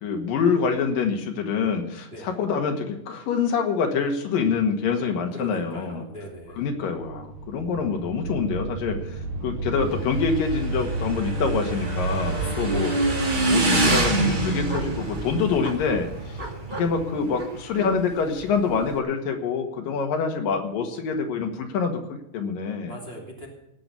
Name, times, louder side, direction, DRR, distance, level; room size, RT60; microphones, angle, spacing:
voice 1, 0.0-6.0 6.6-9.2 9.4-12.9 13.5-16.4 16.7-22.9, left 5 dB, 70° left, 4 dB, 3.3 m, -26 dB
voice 2, 2.0-2.3 4.9-6.7 12.3-13.1 22.8-23.5, equal, 15° right, -1 dB, 2.7 m, -40 dB
sound 1, 6.3-16.2, right 3 dB, 65° right, 3.1 m, -32 dB
Motorcycle / Engine, 9.8-19.0, right 2 dB, 50° right, 0.5 m, -27 dB
17.5 x 6.1 x 8.3 m, 0.86 s
omnidirectional pair, 4.2 m